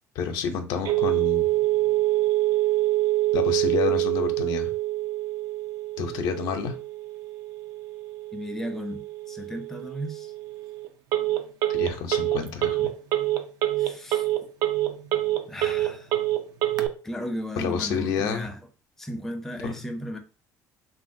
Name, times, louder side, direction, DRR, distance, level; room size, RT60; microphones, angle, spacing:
voice 1, 0.2-1.5 3.3-4.7 6.0-6.8 11.7-12.9 17.6-18.5 19.6-19.7, left 6 dB, 75° left, 0.5 m, -29 dB
Telephone, 0.8-16.9, right 15 dB, 70° right, 0.4 m, -26 dB
voice 2, 8.3-10.3 13.8-14.3 15.5-16.1 17.0-18.5 19.0-20.2, equal, 5° left, 0.4 m, -35 dB
3.1 x 2.4 x 2.6 m
cardioid pair, 115°, 7 cm